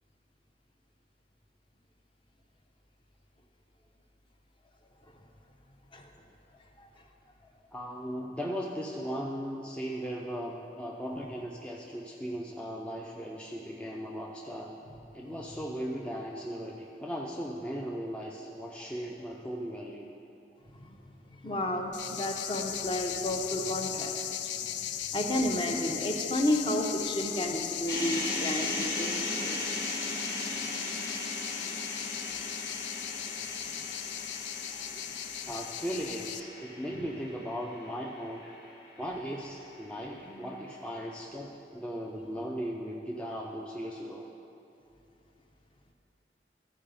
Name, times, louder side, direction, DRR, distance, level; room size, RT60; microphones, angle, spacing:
voice 1, 7.7-14.8 15.1-20.1 35.5-38.6 39.0-44.3, equal, 5° left, -2 dB, 0.4 m, -37 dB
voice 2, 21.3-24.4 24.7-29.1 29.4-29.8 34.7-35.0 36.9-37.0, left 1 dB, 30° left, 2 dB, 0.7 m, -32 dB
sound 1, 21.9-36.4, left 10 dB, 85° left, 0.4 m, -37 dB
sound 2, 27.9-40.0, left 2 dB, 65° left, 1.5 m, -38 dB
14.0 x 4.7 x 5.1 m, 2.8 s
head